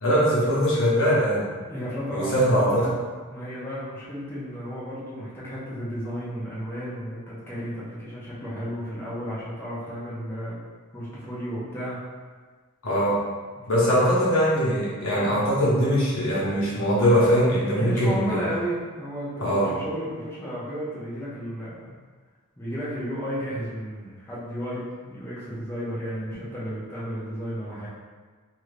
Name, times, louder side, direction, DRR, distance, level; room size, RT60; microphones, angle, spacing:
voice 1, 0.0-1.5 2.1-2.8 12.8-13.2 13.7-18.4 19.4-19.7, equal, 65° left, -7 dB, 0.9 m, -21 dB
voice 2, 1.7-2.9 3.3-10.7 10.9-12.0 13.8-14.1 17.8-21.9 22.6-27.9, equal, 10° left, -10 dB, 0.6 m, -33 dB
2.6 x 2.4 x 3.2 m, 1.4 s
head